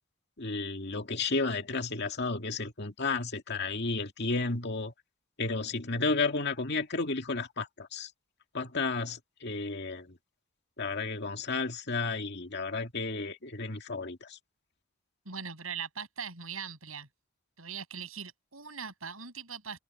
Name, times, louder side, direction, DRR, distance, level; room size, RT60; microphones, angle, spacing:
voice 1, 0.4-4.9 5.4-8.1 8.5-10.2 10.8-14.4, left 3 dB, 55° left, 2.2 m, -32 dB
voice 2, 15.3-17.1 17.6-19.8, right 6 dB, 90° right, 7.5 m, -40 dB
head